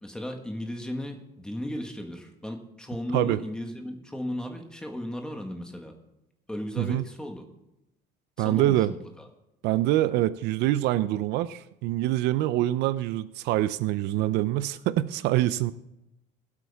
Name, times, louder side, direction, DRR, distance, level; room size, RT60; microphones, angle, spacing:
voice 1, 0.0-5.9 6.5-7.4 8.4-9.3, left 1 dB, 5° left, 3 dB, 1.5 m, -35 dB
voice 2, 8.4-8.9 9.6-15.7, right 15 dB, 70° right, 15 dB, 0.5 m, -25 dB
21.0 x 8.4 x 3.5 m, 0.90 s
cardioid pair, 160°, 18 cm